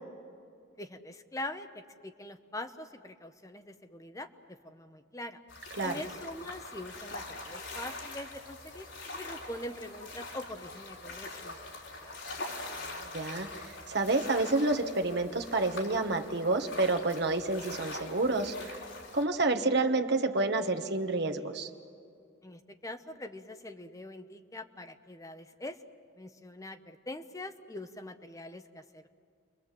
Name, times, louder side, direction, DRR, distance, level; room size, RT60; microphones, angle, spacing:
voice 1, 0.8-5.4 5.8-8.9 9.2-11.6 12.0-12.2 22.4-25.8 26.2-29.1, left 1 dB, 15° left, 7 dB, 0.8 m, -43 dB
sound 1, 5.5-19.2, left 2 dB, 70° left, 3.8 m, -43 dB
voice 2, 13.1-18.8 19.1-21.7, right 2 dB, 60° right, 6 dB, 1.4 m, -29 dB
29.5 x 23.0 x 7.6 m, 2.4 s
head